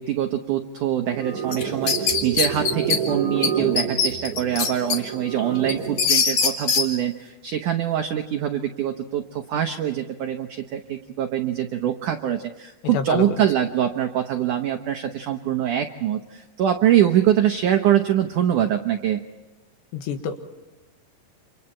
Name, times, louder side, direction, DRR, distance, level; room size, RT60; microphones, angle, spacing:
voice 1, 0.0-19.2, right 10 dB, 90° right, 5 dB, 1.8 m, -24 dB
sound 1, 1.1-6.1, right 7 dB, 65° right, 4.7 m, -29 dB
sound 2, 1.5-3.0 3.4-3.5 3.8-5.0 5.4-6.9, left 6 dB, 50° left, 2.3 m, -21 dB
voice 2, 12.9-13.4 19.9-20.4, left 6 dB, 75° left, 6 dB, 3.7 m, -27 dB
29.5 x 26.5 x 4.4 m, 1.1 s
omnidirectional pair, 5.0 m